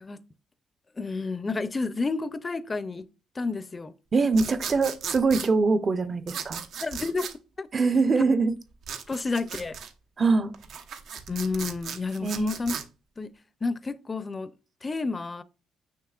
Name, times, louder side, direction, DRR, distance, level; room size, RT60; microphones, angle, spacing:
voice 1, 1.0-3.0 3.4-3.9 6.8-7.3 7.6-7.7 9.1-9.8 11.3-12.8 13.2-13.3 13.6-14.5 14.8-15.4, left 3 dB, 25° left, 0.5 m, -30 dB
voice 2, 4.1-6.6 7.7-8.5 10.2-10.5 12.2-12.6, right 4 dB, 40° right, 0.6 m, -23 dB
sound 1, 4.3-5.5 6.3-7.3 8.8-9.9 10.5-12.8, right 7 dB, 75° right, 0.9 m, -37 dB
6.6 x 6.2 x 2.4 m
cardioid pair, 90°, 0 cm